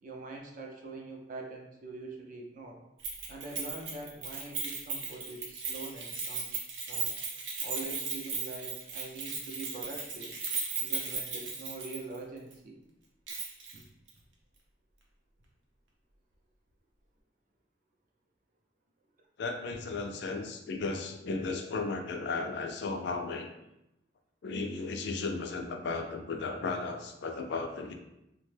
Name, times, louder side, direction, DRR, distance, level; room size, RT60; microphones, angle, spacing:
voice 1, 0.0-2.8 3.3-6.6 6.9-7.2 7.6-10.3 10.8-12.8 13.7-13.8, right 3 dB, 45° right, 1 dB, 0.5 m, -43 dB
Keys jangling, 3.0-12.2 12.5-12.6 13.3-13.8 14.1-14.2, right 5 dB, 85° right, 0.7 m, -36 dB
voice 2, 19.4-23.5 24.4-27.9, left 3 dB, 65° left, 4 dB, 0.4 m, -35 dB
2.8 x 2.1 x 3.2 m, 0.88 s
head